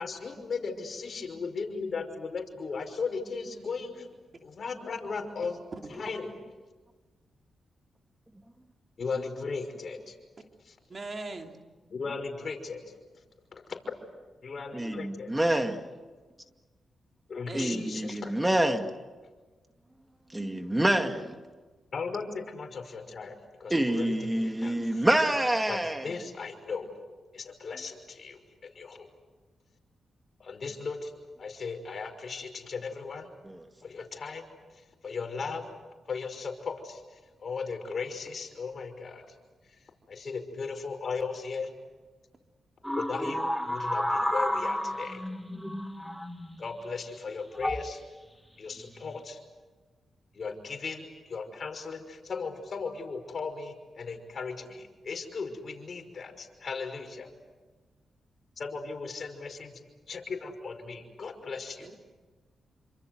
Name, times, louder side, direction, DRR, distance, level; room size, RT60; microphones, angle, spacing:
voice 1, 0.0-4.1 4.4-5.5 5.9-6.3 9.0-10.2 10.7-10.8 11.9-13.0 13.7-13.8 14.4-15.3 17.3-18.4 21.9-25.0 25.7-26.9 27.3-29.1 30.4-31.1 31.4-33.3 33.8-34.5 34.7-35.7 36.1-39.3 39.7-39.8 40.1-41.7 43.0-45.2 46.6-48.0 48.6-49.4 50.3-57.3 58.6-59.8 60.1-61.7, left 4 dB, 55° left, 5.7 m, -37 dB
voice 2, 10.9-11.6 17.5-17.8 61.8-62.0, right 3 dB, 40° right, 3.1 m, -40 dB
voice 3, 14.7-15.8 17.5-18.9 20.3-21.4 23.7-26.1 33.4-33.6, right 1 dB, 15° right, 2.3 m, -27 dB
sound 1, 42.8-46.7 47.5-47.9 48.8-49.2, equal, ahead, 1.9 m, -31 dB
28.5 x 26.0 x 8.1 m
cardioid pair, 60°, 0 cm